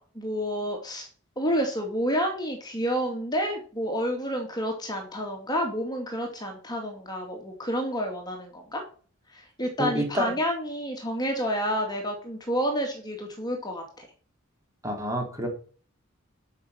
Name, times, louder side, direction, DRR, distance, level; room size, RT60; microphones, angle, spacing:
voice 1, 0.1-1.1 1.4-8.8 9.3-14.1, equal, 20° left, 2 dB, 2.4 m, -29 dB
voice 2, 9.8-10.3 14.8-15.5, equal, 15° right, 2 dB, 2.9 m, -28 dB
11.5 x 5.8 x 6.3 m, 0.41 s
head